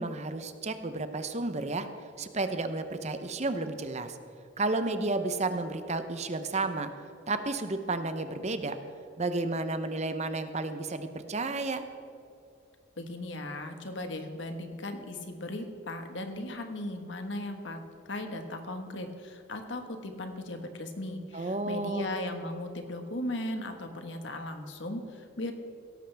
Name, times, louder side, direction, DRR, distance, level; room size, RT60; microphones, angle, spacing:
voice 1, 0.0-1.9 2.2-4.2 4.6-6.9 7.3-8.8 9.2-11.8 21.3-22.1, right 2 dB, 35° right, 9 dB, 0.8 m, -32 dB
voice 2, 13.0-17.8 18.1-25.5, left 1 dB, 70° left, 5 dB, 1.5 m, -37 dB
17.0 x 14.0 x 3.5 m, 2.5 s
head